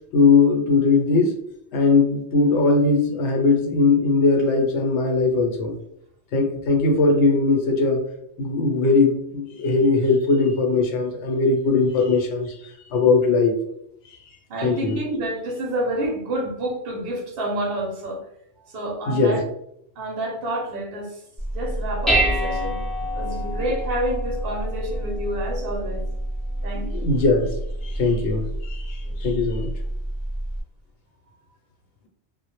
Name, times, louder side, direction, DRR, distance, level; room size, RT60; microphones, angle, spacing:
voice 1, 0.1-1.4 1.7-5.7 6.3-8.0 8.4-12.6 12.9-13.6 14.6-15.0 19.1-19.4 26.8-27.5 27.8-29.7, left 3 dB, 70° left, 2 dB, 0.9 m, -20 dB
voice 2, 14.5-18.2 18.6-19.4 20.0-21.2 21.5-22.8 23.1-26.1 26.6-27.1 29.0-29.2, right 1 dB, 60° right, -1 dB, 0.8 m, -29 dB
Dishes pots and pans, 21.4-30.6, right 1 dB, ahead, 0.5 m, -27 dB
2.1 x 2.1 x 2.9 m, 0.74 s
omnidirectional pair, 1.2 m